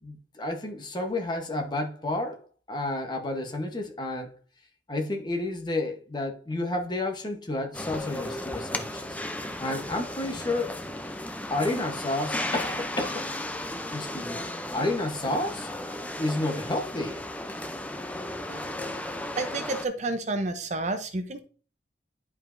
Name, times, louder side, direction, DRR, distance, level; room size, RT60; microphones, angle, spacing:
voice 1, 0.0-2.4 2.7-4.3 4.9-9.2 9.6-10.8 11.5-13.3 13.9-14.4 14.7-15.7 16.2-17.2, left 2 dB, 25° left, 1.0 m, -30 dB
sound 1, 7.7-19.8, left 1 dB, 10° left, 0.5 m, -35 dB
voice 2, 19.4-21.4, right 2 dB, 40° right, 0.6 m, -30 dB
10.5 x 4.8 x 2.6 m
head